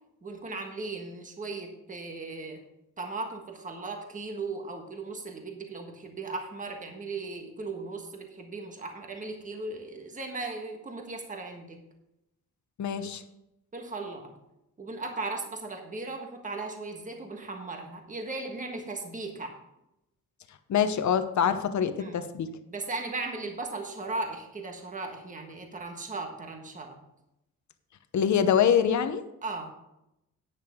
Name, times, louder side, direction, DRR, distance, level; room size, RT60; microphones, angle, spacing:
voice 1, 0.2-2.6 3.0-11.8 13.7-14.3 14.8-19.5 22.0-22.3 22.7-27.0 29.4-29.7, right 3 dB, 25° right, 3 dB, 1.5 m, -37 dB
voice 2, 12.8-13.2 20.7-22.5 28.1-29.2, left 8 dB, 60° left, 10 dB, 0.9 m, -25 dB
10.5 x 9.5 x 3.6 m, 0.86 s
wide cardioid pair, 180°, 32 cm